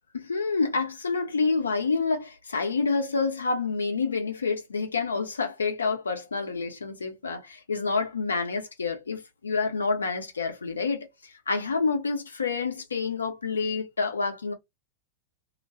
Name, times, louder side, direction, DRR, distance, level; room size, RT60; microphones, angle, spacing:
voice 1, 0.1-11.1 11.5-14.5, left 4 dB, 75° left, 0.7 m, -28 dB
2.2 x 2.2 x 2.6 m
figure-of-eight pair, 90°, 0 cm